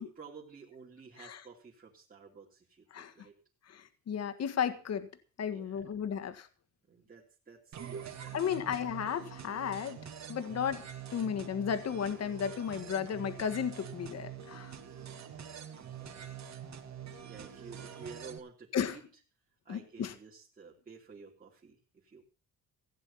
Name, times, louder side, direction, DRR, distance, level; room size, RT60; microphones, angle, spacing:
voice 1, 0.0-3.3 5.5-5.8 6.9-8.6 15.0-16.6 17.3-19.0 19.6-22.2, right 4 dB, 25° right, -4 dB, 3.3 m, -52 dB
voice 2, 3.7-5.1 5.4-6.5 8.3-10.0 10.3-10.9 11.1-14.7 18.7-19.0 19.7-20.1, left 8 dB, 50° left, 10 dB, 1.7 m, -34 dB
sound 1, 7.7-18.4, right 8 dB, 50° right, 2.7 m, -45 dB
16.0 x 9.6 x 5.7 m, 0.38 s
cardioid pair, 125°, 34 cm